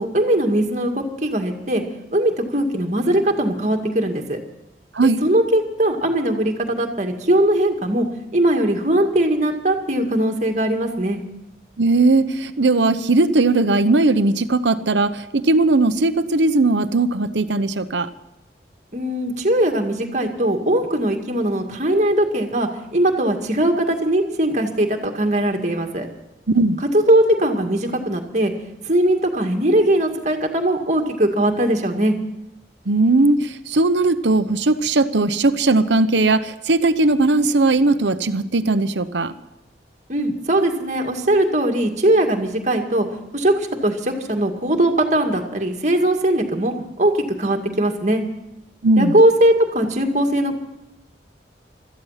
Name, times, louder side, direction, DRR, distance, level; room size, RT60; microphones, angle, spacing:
voice 1, 0.0-1.8 2.1-4.4 5.2-8.1 8.3-11.2 18.9-26.1 26.9-28.5 28.8-32.1 40.1-43.1 43.3-47.1 47.4-48.2 49.0-50.6, right 1 dB, 40° right, 4 dB, 2.1 m, -20 dB
voice 2, 11.8-18.1 26.5-26.8 32.9-39.3 48.8-49.2, right 2 dB, 90° right, 11 dB, 0.9 m, -18 dB
17.0 x 13.5 x 5.8 m, 0.93 s
head